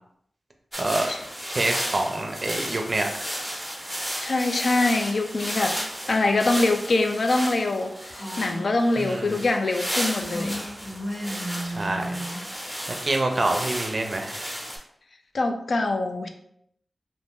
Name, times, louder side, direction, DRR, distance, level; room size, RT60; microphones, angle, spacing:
sound 1, 0.7-14.8, equal, 5° left, 0.7 m, -33 dB
voice 1, 0.8-1.1 1.5-3.3 9.0-9.4 11.6-12.2 12.9-14.4, right 2 dB, 40° right, 4 dB, 0.5 m, -26 dB
voice 2, 4.2-5.8 6.1-10.7 15.3-16.3, left 2 dB, 60° left, 5 dB, 0.3 m, -24 dB
Female speech woman speaking, 8.1-8.7 10.2-12.5, equal, 90° left, 1.4 m, -33 dB
2.5 x 2.5 x 3.5 m, 0.71 s
wide cardioid pair, 105°, 0 cm